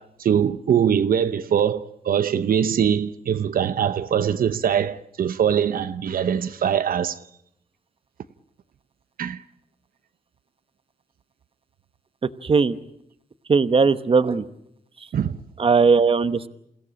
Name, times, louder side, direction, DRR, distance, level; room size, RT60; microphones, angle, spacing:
voice 1, 0.0-7.2 9.2-9.4 15.1-15.4, right 8 dB, 90° right, 0.8 m, -22 dB
voice 2, 13.5-14.4 15.6-16.5, right 5 dB, 40° right, 1.0 m, -18 dB
28.5 x 16.5 x 8.7 m
wide cardioid pair, 125°, 15 cm